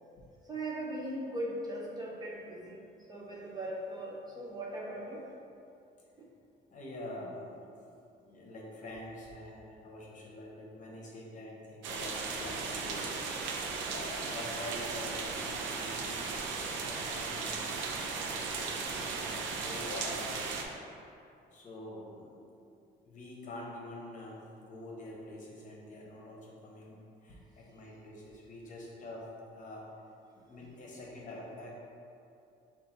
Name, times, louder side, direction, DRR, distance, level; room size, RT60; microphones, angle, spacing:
voice 1, 0.4-2.8 3.1-5.2 6.2-6.3 30.6-30.7, right 1 dB, 20° right, -3 dB, 0.5 m, -39 dB
voice 2, 6.7-7.8 8.2-13.3 13.7-16.3 16.6-20.4 21.5-22.6 23.0-29.3 29.5-29.9 30.4-31.7, left 1 dB, 45° left, -3 dB, 0.9 m, -46 dB
sound 1, 11.8-20.6, right 4 dB, 85° right, 0.5 m, -36 dB
5.5 x 2.5 x 3.9 m, 2.6 s
cardioid pair, 135°, 19 cm